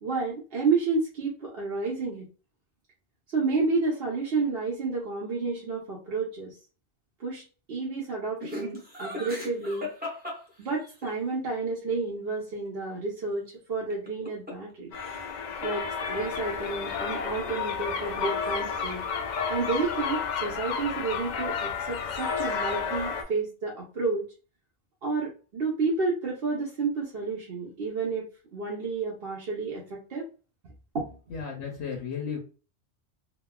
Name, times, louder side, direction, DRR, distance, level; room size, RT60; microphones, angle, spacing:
voice 1, 0.0-2.3 3.3-6.5 7.2-7.4 7.7-9.9 10.6-14.9 15.6-19.0 19.5-24.3 25.0-28.3 28.5-30.3 30.9-31.2, right 4 dB, 60° right, -4 dB, 0.9 m, -30 dB
Laughter, 8.4-11.1 13.9-14.7 15.0-15.5, left 2 dB, 10° right, 0.7 m, -38 dB
sound 1, 14.9-23.2, left 6 dB, 60° left, 0.5 m, -31 dB
voice 2, 31.3-32.4, left 6 dB, 80° left, 1 dB, 1.0 m, -34 dB
3.1 x 2.2 x 2.2 m, 0.35 s
omnidirectional pair, 1.2 m